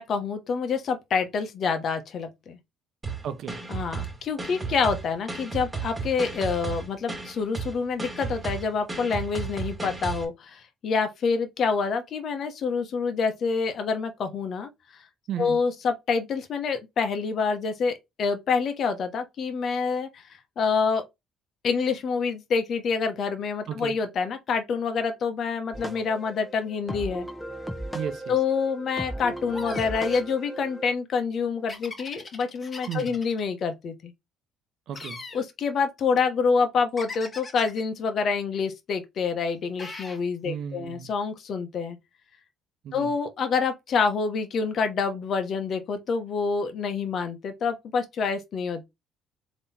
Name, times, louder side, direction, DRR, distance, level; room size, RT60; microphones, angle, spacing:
voice 1, 0.0-2.6 3.7-14.7 15.4-21.0 21.6-27.3 28.3-34.1 35.3-42.0 42.9-48.8, left 5 dB, 55° left, 1.0 m, -27 dB
sound 1, 3.0-10.2, right 4 dB, 20° right, 1.9 m, -34 dB
voice 2, 3.2-3.6 15.3-15.6 23.7-24.0 27.9-28.4 32.9-33.2 34.9-35.2 40.4-41.1 42.8-43.1, right 9 dB, 65° right, 0.7 m, -34 dB
sound 2, 25.7-30.9, right 1 dB, 5° left, 1.1 m, -36 dB
sound 3, 29.5-30.3 31.7-33.4 34.9-35.4 37.0-37.8 39.8-40.2, left 3 dB, 30° left, 1.5 m, -40 dB
3.7 x 3.0 x 4.2 m
supercardioid pair, 85°, 0 cm